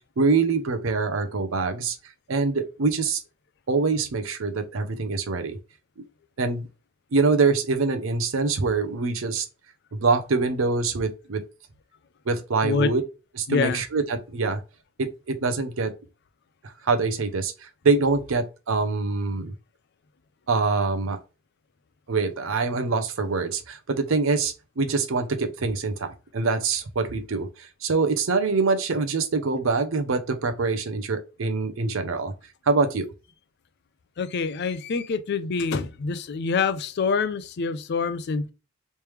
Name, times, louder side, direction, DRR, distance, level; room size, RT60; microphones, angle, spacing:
voice 1, 0.2-2.0 2.3-3.2 3.7-5.6 6.4-6.7 7.1-9.5 9.9-11.4 12.3-13.0 13.4-14.6 15.0-15.9 16.6-19.5 20.5-21.2 22.1-32.3 32.7-33.1, right 4 dB, 75° right, 0.6 m, -24 dB
voice 2, 12.6-12.9 13.5-13.8 34.2-38.5, left 5 dB, 55° left, 0.4 m, -26 dB
3.3 x 3.1 x 3.1 m
head